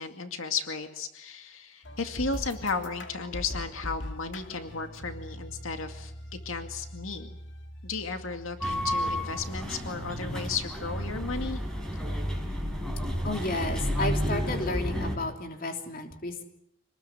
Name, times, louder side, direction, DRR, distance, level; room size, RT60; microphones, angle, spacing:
voice 1, 0.0-7.4 7.8-11.6, left 4 dB, 85° left, 6 dB, 2.3 m, -34 dB
sound 1, 1.8-9.8, left 1 dB, 65° left, 2.6 m, -42 dB
sound 2, 8.6-15.2, equal, 5° left, 5.3 m, -31 dB
voice 2, 13.2-16.4, left 2 dB, 45° left, 4 dB, 3.2 m, -32 dB
27.0 x 20.0 x 9.3 m, 0.76 s
head